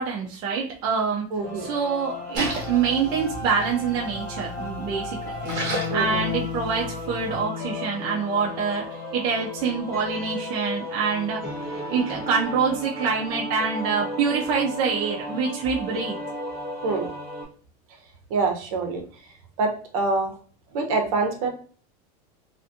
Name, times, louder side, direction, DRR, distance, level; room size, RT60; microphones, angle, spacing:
voice 1, 0.0-1.3 1.6-5.3 5.9-8.9 9.1-16.1, right 5 dB, 25° right, -3 dB, 0.3 m, -26 dB
voice 2, 1.3-1.7 5.9-6.3 16.8-17.1 18.3-19.0 19.6-20.3 20.7-21.5, right 3 dB, 60° right, 3 dB, 0.7 m, -25 dB
sound 1, 1.4-17.5, left 2 dB, 15° left, 0.8 m, -34 dB
Splash splatter, 2.3-7.4, equal, 40° right, 1.1 m, -34 dB
2.4 x 2.4 x 2.5 m, 0.44 s
supercardioid pair, 180°, 20 cm